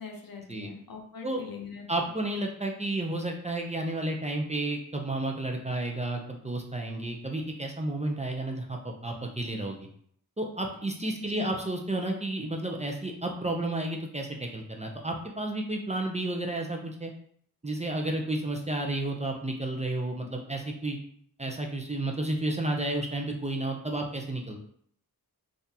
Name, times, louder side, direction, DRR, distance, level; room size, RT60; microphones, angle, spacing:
voice 1, 0.0-1.9 11.2-11.6, left 6 dB, 65° left, 2 dB, 0.7 m, -42 dB
voice 2, 1.9-9.9 10.4-17.1 17.6-21.0 21.4-24.6, right 2 dB, 20° right, 1 dB, 0.5 m, -32 dB
3.7 x 2.5 x 2.7 m, 0.63 s
wide cardioid pair, 65°, 37 cm